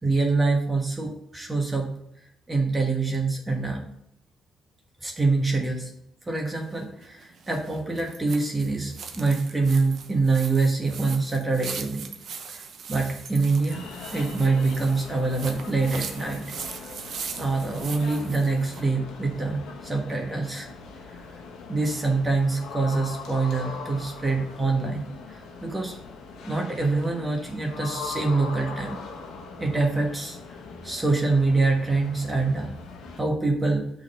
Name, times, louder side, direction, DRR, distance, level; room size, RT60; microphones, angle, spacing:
voice 1, 0.0-1.9 2.5-3.9 5.0-5.9 6.3-12.1 12.5-13.8 14.1-16.6 17.4-20.7 21.7-25.9 26.4-29.0 29.6-30.4 30.8-32.8 33.1-33.9, right 3 dB, 20° right, 0 dB, 1.2 m, -25 dB
sound 1, 6.5-18.9, right 6 dB, 65° right, 0.8 m, -40 dB
sound 2, 13.7-33.2, left 4 dB, 85° left, 1.0 m, -41 dB
6.2 x 3.8 x 5.4 m, 0.74 s
cardioid pair, 90°, 0 cm